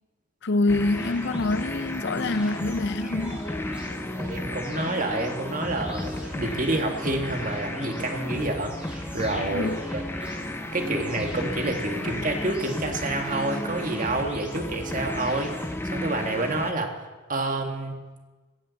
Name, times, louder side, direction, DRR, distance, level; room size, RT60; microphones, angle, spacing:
voice 1, 0.4-3.4 9.5-9.8, left 2 dB, 55° left, 0.5 m, -26 dB
sound 1, 0.7-16.7, left 1 dB, 10° left, 0.6 m, -33 dB
sound 2, 0.9-15.6, equal, 5° right, 5.6 m, -43 dB
voice 2, 4.2-10.0 10.7-15.5 15.8-17.0 17.3-18.0, right 2 dB, 40° right, 1.7 m, -28 dB
16.5 x 16.0 x 4.1 m
head